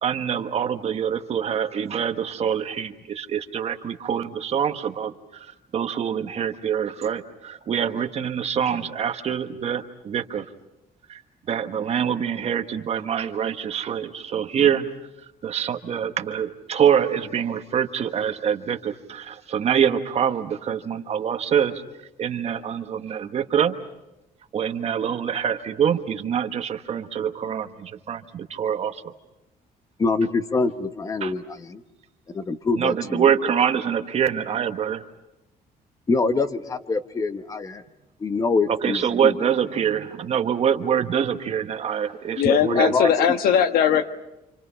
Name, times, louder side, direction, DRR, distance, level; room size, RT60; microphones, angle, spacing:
voice 1, 0.0-10.4 11.1-11.2 11.5-14.9 15.4-21.8 22.2-23.7 24.5-29.1 31.2-31.3 32.8-35.0 38.7-42.9, right 8 dB, 40° right, 7 dB, 1.3 m, -25 dB
voice 2, 30.0-31.8 32.3-33.3 36.1-37.8 38.2-39.3 42.4-43.1, left 3 dB, 20° left, 9 dB, 1.1 m, -25 dB
voice 3, 42.4-44.0, left 8 dB, 75° left, 8 dB, 1.4 m, -19 dB
29.0 x 27.0 x 5.7 m, 0.95 s
cardioid pair, 160°, 16 cm